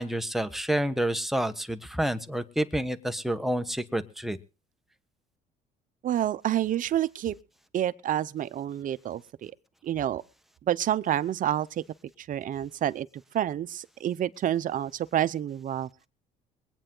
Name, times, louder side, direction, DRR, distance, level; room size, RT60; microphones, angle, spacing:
voice 1, 0.0-4.4, right 1 dB, ahead, 1.2 m, -29 dB
voice 2, 6.0-7.3 7.7-9.5 9.8-10.2 10.7-11.8 12.2-13.1 13.3-15.9, right 11 dB, 50° right, 0.8 m, -28 dB
22.5 x 9.1 x 3.8 m
cardioid pair, 110°, 17 cm